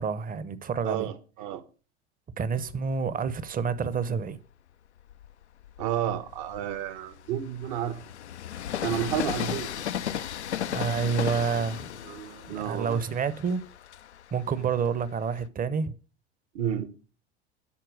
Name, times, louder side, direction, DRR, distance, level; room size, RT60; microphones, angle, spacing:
voice 1, 0.0-1.1 2.4-4.4 10.7-11.9 12.6-13.6 14.3-15.9, right 6 dB, 25° right, 0.9 m, -28 dB
voice 2, 0.8-1.6 5.8-8.0 8.8-9.8 12.0-13.0 16.5-16.9, right 10 dB, 55° right, 1.3 m, -31 dB
Train, 2.6-4.2 4.9-15.5, left 10 dB, 90° left, 0.5 m, -36 dB
11.5 x 4.5 x 6.3 m
hypercardioid pair, 80°, 33 cm